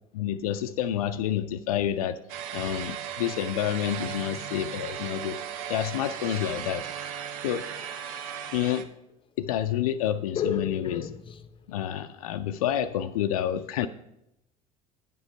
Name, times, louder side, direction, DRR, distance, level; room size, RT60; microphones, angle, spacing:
voice 1, 0.1-2.2 2.5-5.4 5.7-7.1 7.4-7.6 8.5-8.9 9.4-11.0 11.7-13.9, left 11 dB, 75° left, 0.4 m, -29 dB
sound 1, 2.3-8.8, right 9 dB, 70° right, 0.7 m, -36 dB
voice 2, 10.3-11.7 13.8-13.9, left 7 dB, 30° left, 0.6 m, -32 dB
9.4 x 5.3 x 5.2 m
hypercardioid pair, 65°, 19 cm